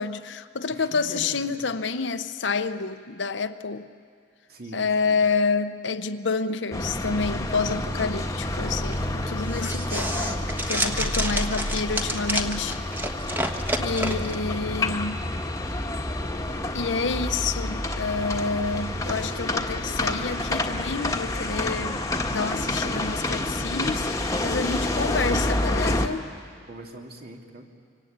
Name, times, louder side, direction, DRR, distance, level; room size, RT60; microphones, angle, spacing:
voice 1, 0.0-3.9 4.7-12.8 13.8-15.2 16.7-22.0 22.3-26.3, left 4 dB, 70° left, 0.9 m, -28 dB
voice 2, 0.7-1.7 4.5-5.2 24.7-25.5 26.7-27.7, right 1 dB, 55° right, 2.6 m, -41 dB
sound 1, 6.7-26.1, left 1 dB, 20° left, 1.4 m, -29 dB
sound 2, 8.6-14.4, equal, 10° right, 1.3 m, -29 dB
25.5 x 25.0 x 8.8 m
head